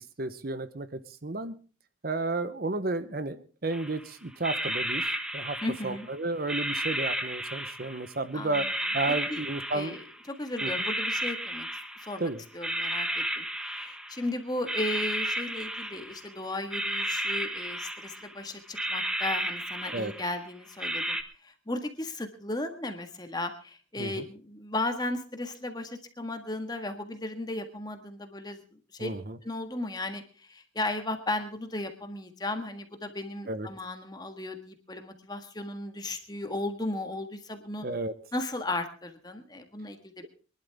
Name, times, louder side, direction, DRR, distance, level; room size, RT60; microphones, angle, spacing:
voice 1, 0.2-1.5 2.0-5.0 5.3-5.6 5.8-8.7 8.9-10.0 10.6-10.7 12.2-12.4 19.9-20.1 24.0-24.2 29.0-29.4 33.5-33.7 37.8-38.1, right 2 dB, 50° right, 12 dB, 0.9 m, -32 dB
sound 1, 3.7-4.0 4.3-6.1 6.5-8.1 8.5-10.2 10.6-12.2 12.6-14.3 14.7-16.3 16.7-18.3 18.7-20.4 20.8-21.2, right 1 dB, 5° right, 1.0 m, -33 dB
voice 2, 5.6-6.1 8.3-8.7 9.3-9.4 9.7-11.7 12.0-21.2 21.4-28.6 28.9-29.1 29.4-37.9 38.3-40.3, left 2 dB, 20° left, 6 dB, 1.6 m, -35 dB
24.0 x 11.5 x 3.5 m, 0.37 s
head